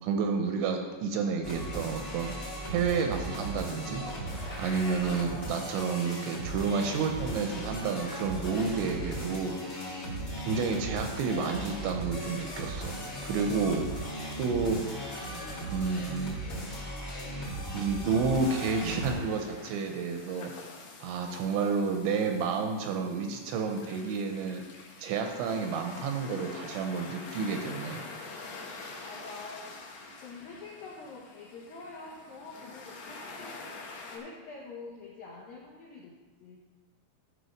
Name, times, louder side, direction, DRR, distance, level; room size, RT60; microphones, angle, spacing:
voice 1, 0.0-2.3 2.7-4.0 4.6-10.0 10.5-13.0 13.2-14.1 14.4-14.8 15.7-16.3 16.7-16.8 17.7-20.5 21.0-24.6 25.0-28.0, right 5 dB, 80° right, 4 dB, 2.8 m, -30 dB
sound 1, 1.4-19.1, right 1 dB, 45° left, 1.3 m, -37 dB
sound 2, 18.4-34.2, left 3 dB, 70° left, 2.3 m, -46 dB
voice 2, 29.0-29.7 30.2-33.6 34.1-36.6, left 3 dB, 85° left, -3 dB, 2.0 m, -46 dB
13.5 x 4.7 x 5.1 m, 1.3 s
omnidirectional pair, 5.7 m